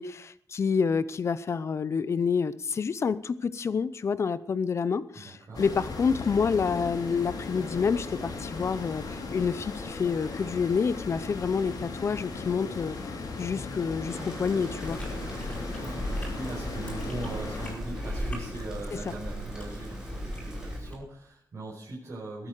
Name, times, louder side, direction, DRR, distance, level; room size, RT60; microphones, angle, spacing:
voice 1, 0.0-13.0 13.4-15.0 18.9-19.1, left 5 dB, 40° left, 16 dB, 0.7 m, -28 dB
voice 2, 5.2-5.6 15.2-22.5, right 2 dB, 45° right, -7 dB, 5.5 m, -40 dB
sound 1, 5.5-17.7, left 4 dB, 70° left, 4.1 m, -37 dB
sound 2, 14.1-20.8, right 1 dB, 10° right, 4.0 m, -44 dB
Chewing mastication, 14.8-20.9, equal, 15° left, 5.2 m, -36 dB
20.5 x 8.9 x 6.7 m, 0.63 s
wide cardioid pair, 170°, 7 cm